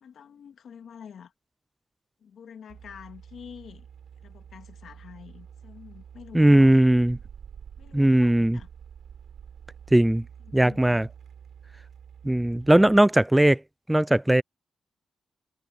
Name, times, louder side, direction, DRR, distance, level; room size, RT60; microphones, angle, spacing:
voice 1, 0.0-1.3 2.2-3.9 4.2-6.8 7.8-8.7 10.4-11.0, left 7 dB, 80° left, 2.0 m, -47 dB
sound 1, 2.7-13.0, right 8 dB, 80° right, 3.8 m, -47 dB
voice 2, 6.3-7.2 7.9-8.6 9.9-10.2 10.5-11.1 12.2-13.6 13.9-14.4, right 1 dB, 10° right, 0.4 m, -19 dB
cardioid pair, 55°, 0 cm